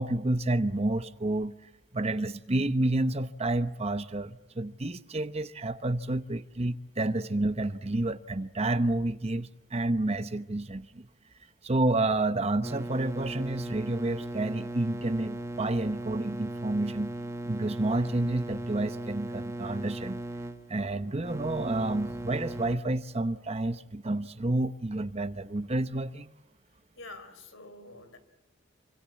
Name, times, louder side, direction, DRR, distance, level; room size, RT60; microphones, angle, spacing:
voice 1, 0.0-1.6 1.9-11.1 11.6-17.1 17.4-20.2 20.7-26.3, right 2 dB, 30° right, 0.9 m, -29 dB
sound 1, 12.6-22.8, right 1 dB, 15° right, 1.3 m, -38 dB
voice 2, 27.0-28.2, left 2 dB, 75° left, 4.0 m, -47 dB
27.5 x 25.5 x 7.3 m
head